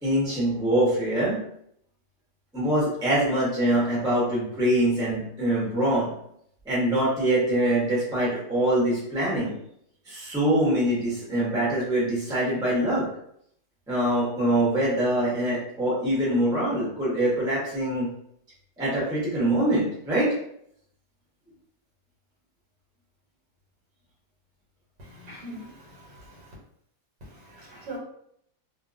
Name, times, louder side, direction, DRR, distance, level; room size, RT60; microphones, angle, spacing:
voice 1, 0.0-1.4 2.5-6.1 6.6-9.5 10.1-13.1 13.9-18.1 18.8-20.3, right 1 dB, 5° right, -7 dB, 0.7 m, -24 dB
voice 2, 25.0-26.5 27.2-28.0, right 1 dB, 80° right, -4 dB, 1.4 m, -43 dB
2.8 x 2.3 x 2.5 m, 0.71 s
omnidirectional pair, 1.8 m